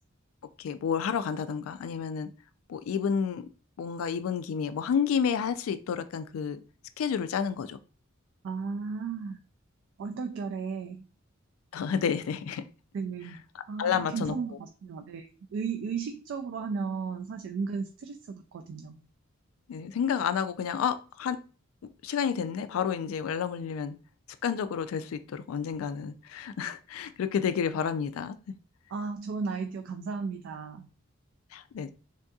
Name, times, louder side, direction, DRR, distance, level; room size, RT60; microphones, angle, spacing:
voice 1, 0.6-2.3 2.7-3.5 3.8-6.6 7.0-7.8 11.7-12.6 13.8-14.3 19.7-21.4 22.0-24.0 24.4-28.4 31.5-31.9, left 7 dB, 85° left, 12 dB, 0.3 m, -30 dB
voice 2, 8.4-9.4 10.0-11.0 12.9-13.4 13.7-19.0 28.9-30.9, right 5 dB, 60° right, 5 dB, 0.3 m, -35 dB
3.5 x 2.7 x 2.3 m, 0.37 s
head